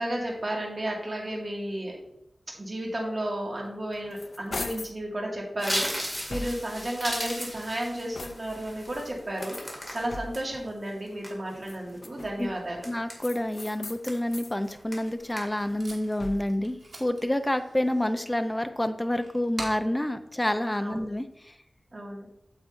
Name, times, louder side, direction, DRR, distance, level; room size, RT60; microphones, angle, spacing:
voice 1, 0.0-2.0 2.6-9.6 9.9-12.9 20.8-21.1 21.9-22.3, right 1 dB, 45° right, -2 dB, 2.0 m, -33 dB
sound 1, 3.7-5.0 5.6-6.9 7.5-8.7 9.3-10.6 11.5-12.5 13.2-14.6 15.0-16.7, left 3 dB, 60° left, 0.4 m, -41 dB
sound 2, 5.6-10.4 10.9-11.7 12.2-12.4 12.8-13.6 14.1-14.4 14.6-15.1 15.4-15.8 16.1-16.4, equal, ahead, 2.3 m, -35 dB
voice 2, 12.9-21.5, left 1 dB, 15° left, 8 dB, 0.6 m, -28 dB
Packing tape duct tape, 14.9-21.3, right 2 dB, 90° right, 2.0 m, -47 dB
8.3 x 7.7 x 2.6 m, 0.77 s
wide cardioid pair, 80°, 0 cm